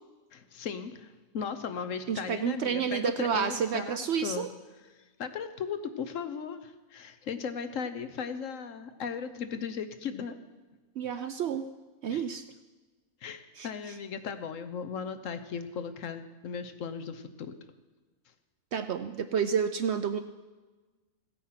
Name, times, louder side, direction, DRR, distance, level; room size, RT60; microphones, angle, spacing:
voice 1, 0.3-4.5 5.2-10.4 12.1-12.2 13.2-17.6, left 6 dB, 65° left, 10 dB, 1.1 m, -37 dB
voice 2, 2.1-4.5 11.0-11.6 12.0-12.4 13.6-13.7 18.7-20.2, right 7 dB, 65° right, 9 dB, 0.7 m, -30 dB
16.0 x 8.6 x 5.8 m, 1.3 s
omnidirectional pair, 1.5 m